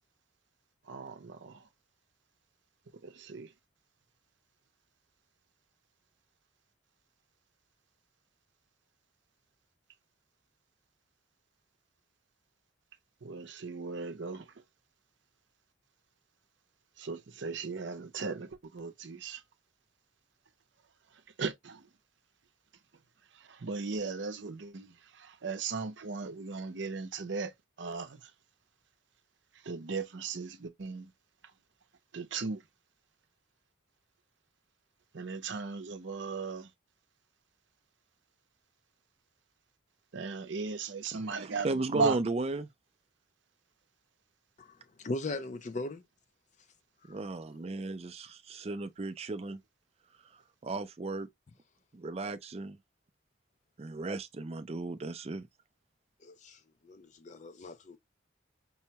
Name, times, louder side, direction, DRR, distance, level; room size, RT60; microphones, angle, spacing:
voice 1, 0.9-1.6 3.0-3.5 13.2-14.5 17.0-19.4 21.4-21.8 23.5-27.5 27.8-28.2 29.6-31.1 32.1-32.6 35.1-36.7 40.1-42.2, right 4 dB, 70° right, 0.7 m, -37 dB
voice 2, 41.1-42.7 47.1-49.6 50.6-51.3 51.9-52.8 53.8-55.5, right 2 dB, 30° right, 0.4 m, -35 dB
voice 3, 44.6-46.0 47.0-47.2 56.2-58.0, left 2 dB, 40° left, 0.4 m, -39 dB
5.4 x 2.2 x 2.8 m
head